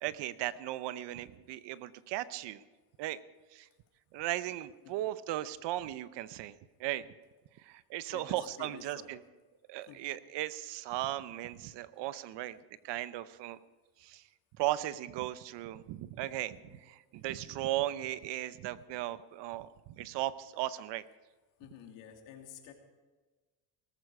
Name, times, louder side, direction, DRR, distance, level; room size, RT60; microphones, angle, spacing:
voice 1, 0.0-2.6 3.0-3.2 3.5-3.7 4.1-7.1 7.6-9.2 9.7-12.6 12.8-13.6 14.0-14.2 14.6-21.0, right 14 dB, 70° right, 15 dB, 0.9 m, -37 dB
voice 2, 8.1-9.1 9.9-10.0 16.5-16.8 17.4-17.7 21.6-22.7, left 9 dB, 85° left, 3 dB, 2.8 m, -51 dB
18.5 x 14.5 x 4.8 m, 1.3 s
cardioid pair, 115°, 43 cm